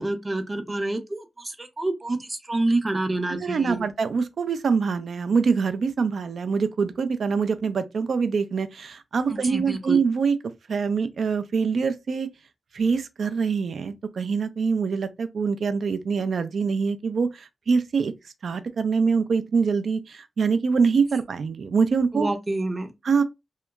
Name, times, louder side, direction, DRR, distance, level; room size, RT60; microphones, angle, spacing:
voice 1, 0.0-3.8 9.3-10.0 22.1-22.9, right 2 dB, 30° right, 0.6 m, -27 dB
voice 2, 3.3-10.4 10.7-12.3 12.7-18.1 18.4-22.3 23.0-23.2, right 5 dB, 80° right, 0.3 m, -24 dB
2.7 x 2.2 x 2.3 m
cardioid pair, 55°, 0 cm